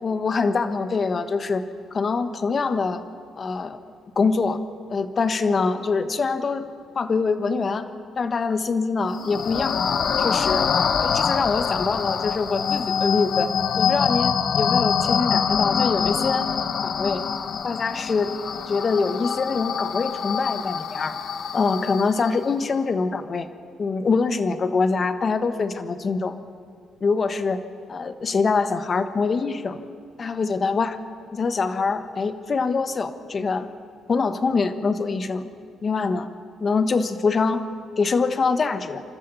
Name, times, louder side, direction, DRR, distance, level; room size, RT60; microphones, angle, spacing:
voice 1, 0.0-1.6 1.9-3.0 3.4-3.8 4.1-4.6 4.9-6.7 6.9-7.9 8.2-9.8 10.2-10.7 11.0-13.5 13.8-16.5 16.8-17.2 17.6-18.3 18.7-21.2 21.5-23.5 23.8-26.4 27.0-27.6 27.9-29.8 30.2-31.0 31.3-33.7 34.1-35.5 35.8-36.3 36.6-37.6 38.0-39.0, left 4 dB, 40° left, 10 dB, 1.3 m, -24 dB
sound 1, 9.1-22.5, left 6 dB, 60° left, 1.0 m, -25 dB
28.5 x 13.0 x 7.0 m, 2.2 s
cardioid pair, 90°, 0 cm